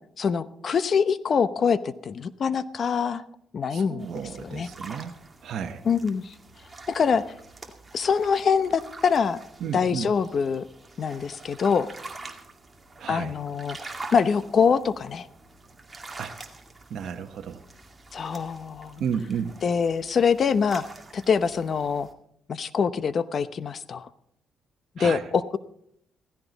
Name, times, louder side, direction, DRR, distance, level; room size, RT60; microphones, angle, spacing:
voice 1, 0.2-3.2 3.5-4.1 4.4-4.7 5.9-6.3 6.9-7.2 7.9-9.4 9.7-10.6 11.0-11.9 13.1-15.3 18.1-19.0 19.6-20.8 21.1-22.1 22.5-24.1 25.0-25.6, left 6 dB, 50° left, 14 dB, 0.8 m, -24 dB
voice 2, 3.7-5.1 5.4-5.9 9.6-10.1 13.0-13.4 16.2-16.3 16.9-17.6 19.0-19.6 25.0-25.2, right 7 dB, 65° right, 4 dB, 1.0 m, -32 dB
sound 1, 4.0-22.1, right 3 dB, 20° right, 2.2 m, -45 dB
16.0 x 15.0 x 4.1 m, 0.71 s
cardioid pair, 90°, 0 cm